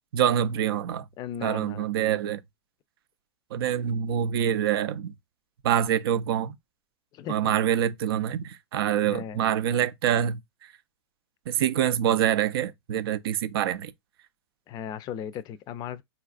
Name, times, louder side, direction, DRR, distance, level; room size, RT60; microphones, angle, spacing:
voice 1, 0.1-1.1 1.4-2.4 3.5-5.1 5.6-6.6 7.3-10.7 11.5-13.9, right 10 dB, 65° right, 0.4 m, -25 dB
voice 2, 1.2-1.9 7.1-7.3 9.0-9.5 14.7-16.0, left 9 dB, 30° left, 0.4 m, -36 dB
4.0 x 2.4 x 2.4 m
hypercardioid pair, 115°, 13 cm